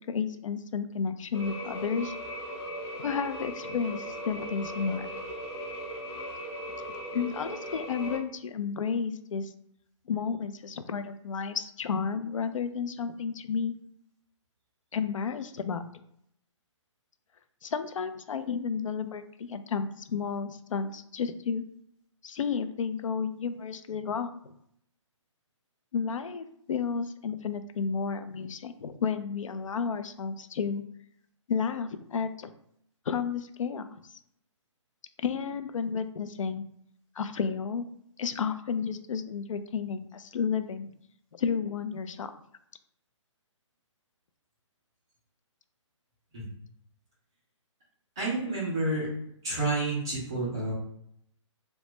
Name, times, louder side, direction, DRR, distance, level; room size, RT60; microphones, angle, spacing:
voice 1, 0.1-2.2 3.0-5.1 7.1-9.5 10.1-13.7 14.9-15.8 17.6-21.6 22.2-24.3 25.9-30.8 31.5-32.5 33.1-33.9 35.2-36.7 37.2-37.9 38.2-40.9 41.3-42.3, left 6 dB, 80° left, 10 dB, 0.4 m, -32 dB
sound 1, 1.3-8.2, equal, 55° left, 0.8 m, -38 dB
voice 2, 48.2-49.1 49.4-50.7, right 2 dB, 10° right, -7 dB, 0.3 m, -29 dB
2.8 x 2.1 x 3.1 m, 0.71 s
hypercardioid pair, 170°, 16 cm